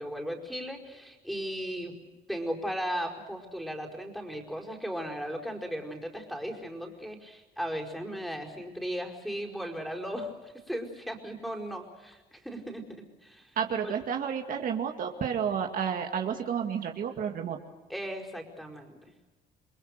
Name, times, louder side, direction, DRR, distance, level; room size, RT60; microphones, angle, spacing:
voice 1, 0.0-1.9 2.3-13.6 13.8-13.9 17.9-19.1, equal, ahead, 2 dB, 4.9 m, -36 dB
voice 2, 13.6-17.6, right 7 dB, 55° right, 3 dB, 2.2 m, -31 dB
29.5 x 21.5 x 6.7 m, 1.2 s
cardioid pair, 110°, 17 cm